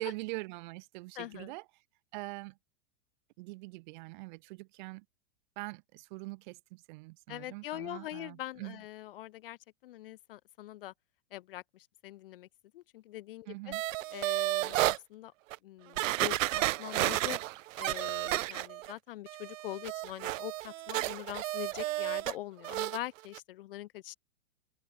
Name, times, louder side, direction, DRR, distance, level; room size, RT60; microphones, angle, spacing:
voice 1, 0.0-1.6 2.1-2.6 3.4-5.0 5.6-8.8 13.5-13.8, right 25 dB, 40° right, 2.1 m, -43 dB
voice 2, 1.2-1.5 7.3-10.9 11.3-12.5 12.7-13.6 14.1-15.3 15.6-17.4 17.8-24.1, left 15 dB, 50° left, 0.5 m, -43 dB
sound 1, 13.7-15.0 15.5-15.6 16.0-18.9 19.3-22.3 22.6-23.0 23.3-23.4, right 17 dB, 90° right, 0.5 m, -32 dB
supercardioid pair, 170°, 38 cm